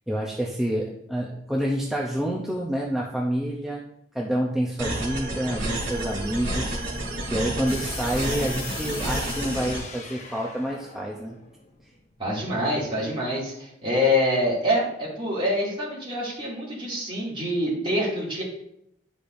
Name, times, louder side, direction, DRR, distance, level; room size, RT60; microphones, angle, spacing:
voice 1, 0.1-3.8 4.1-11.4, equal, ahead, -3 dB, 0.6 m, -28 dB
sound 1, 4.8-9.8, right 1 dB, 70° right, 2.9 m, -30 dB
sound 2, 7.7-12.5, left 5 dB, 40° left, 0.8 m, -40 dB
voice 2, 12.2-18.4, left 1 dB, 30° right, -6 dB, 2.5 m, -25 dB
9.9 x 5.1 x 2.6 m, 0.77 s
head